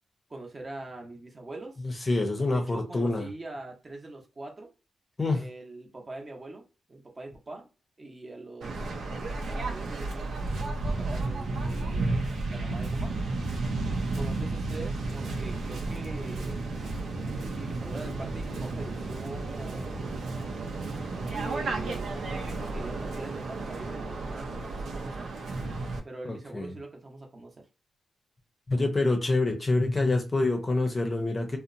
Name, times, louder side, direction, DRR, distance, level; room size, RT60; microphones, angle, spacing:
voice 1, 0.3-1.9 2.5-4.7 5.3-7.7 8.0-8.8 9.4-13.1 14.1-16.6 17.5-19.9 21.1-25.3 26.0-27.7, right 2 dB, 30° right, 0.8 m, -43 dB
voice 2, 2.1-3.3 5.2-5.4 26.3-26.7 28.7-31.6, left 2 dB, 30° left, 0.6 m, -26 dB
Waves surf, 8.6-26.0, right 3 dB, 90° right, 0.6 m, -32 dB
2.8 x 2.0 x 2.5 m
wide cardioid pair, 110°, 0 cm